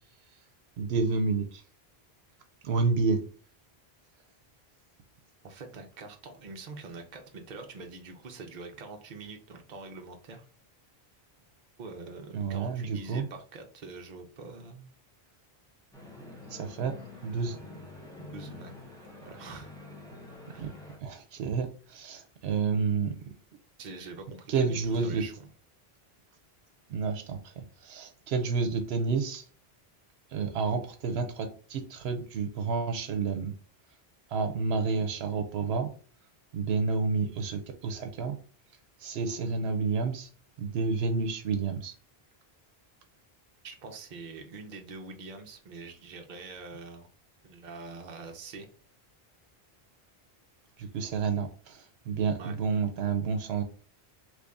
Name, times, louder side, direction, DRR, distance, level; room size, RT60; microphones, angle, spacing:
voice 1, 0.8-1.6 2.6-3.2 12.3-13.3 16.5-16.9 17.2-17.6 20.6-20.7 21.0-23.2 24.5-25.2 26.9-29.5 30.3-33.5 34.3-35.9 36.5-38.4 39.0-40.3 40.6-41.9 50.8-53.6, right 4 dB, 80° right, 6 dB, 0.9 m, -30 dB
voice 2, 5.4-10.4 11.8-14.9 18.3-18.7 19.2-19.8 20.5-20.7 23.8-25.5 43.6-47.1 47.4-48.7 52.4-52.6, right 3 dB, 50° right, 4 dB, 0.8 m, -44 dB
sound 1, 15.9-21.0, left 2 dB, 5° left, 0.7 m, -47 dB
3.1 x 2.6 x 3.4 m, 0.41 s
omnidirectional pair, 1.0 m